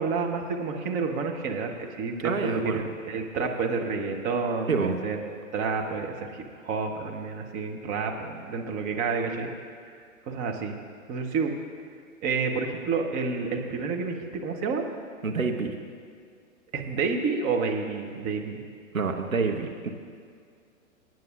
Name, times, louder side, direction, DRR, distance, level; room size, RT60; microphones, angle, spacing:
voice 1, 0.0-6.4 6.6-9.5 10.3-10.8 11.1-11.5 12.2-14.8 16.7-18.6, right 4 dB, 20° right, 2 dB, 0.9 m, -29 dB
voice 2, 2.2-2.8 4.7-5.0 15.2-15.7 18.9-19.9, right 4 dB, 80° right, 4 dB, 1.1 m, -27 dB
23.0 x 9.3 x 2.4 m, 2.1 s
figure-of-eight pair, 115°, 41 cm